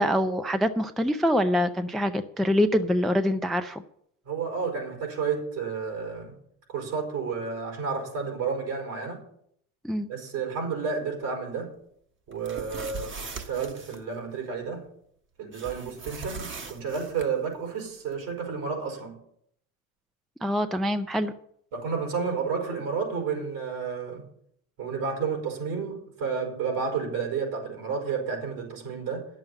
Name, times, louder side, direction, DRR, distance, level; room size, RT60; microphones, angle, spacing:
voice 1, 0.0-3.8 9.8-10.1 20.4-21.3, equal, ahead, 0.4 m, -25 dB
voice 2, 4.2-6.3 6.7-9.2 10.1-11.8 12.3-14.9 15.4-19.2 21.7-24.2 24.8-29.3, right 5 dB, 60° right, 5.1 m, -31 dB
sound 1, 12.3-14.0 15.5-17.3, right 5 dB, 25° right, 1.4 m, -39 dB
11.0 x 7.4 x 7.9 m
supercardioid pair, 105°, 43 cm